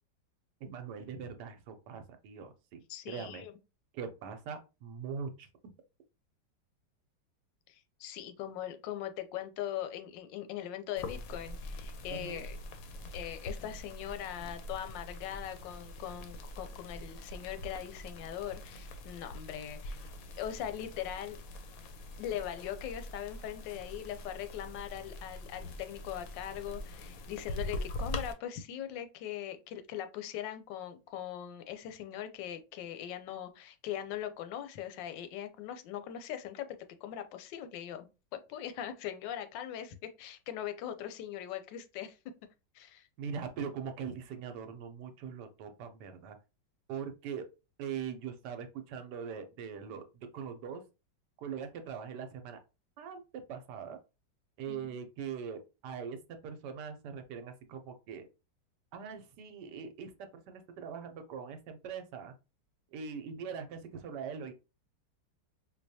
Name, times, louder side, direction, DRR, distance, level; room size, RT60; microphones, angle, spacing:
voice 1, 0.6-3.4 3.9-5.5 12.1-12.5 20.5-20.6 43.2-46.4 46.9-47.4 47.8-50.8 51.4-52.6 53.0-53.2 53.5-54.0 54.6-58.3 58.9-60.1 60.5-62.3 62.9-64.5, right 7 dB, 75° right, 1.2 m, -41 dB
voice 2, 2.9-3.5 7.7-12.6 13.1-20.0 20.4-21.4 22.2-36.7 37.0-38.1 38.3-42.2 42.7-43.1 54.7-54.9, left 10 dB, 90° left, 1.3 m, -40 dB
sound 1, 11.0-28.3, left 1 dB, 70° left, 0.9 m, -43 dB
4.5 x 2.3 x 2.7 m
omnidirectional pair, 1.9 m